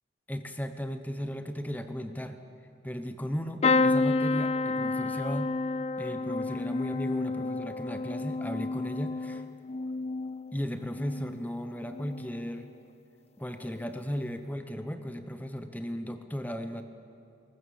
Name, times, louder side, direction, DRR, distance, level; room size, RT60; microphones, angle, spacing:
voice 1, 0.3-2.4 2.8-5.5 6.0-9.4 10.5-12.7 13.4-16.8, equal, 10° left, 8 dB, 1.0 m, -36 dB
sound 1, 3.6-11.5 11.9-12.4 13.7-13.9 14.1-14.2, left 3 dB, 30° left, 0.4 m, -30 dB
21.5 x 19.0 x 7.2 m, 2.8 s
head